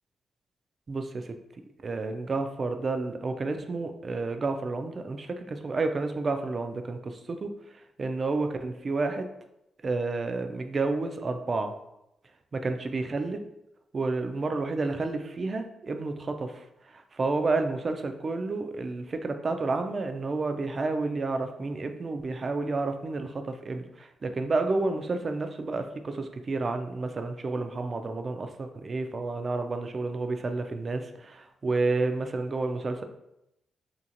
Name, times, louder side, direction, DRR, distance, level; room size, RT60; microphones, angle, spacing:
voice 1, 0.9-1.3 1.8-7.5 8.0-9.3 9.8-11.7 12.5-13.4 13.9-16.6 16.9-33.0, right 3 dB, 45° right, 7 dB, 0.3 m, -30 dB
2.9 x 2.5 x 2.8 m, 0.85 s
cardioid pair, 65°, 0 cm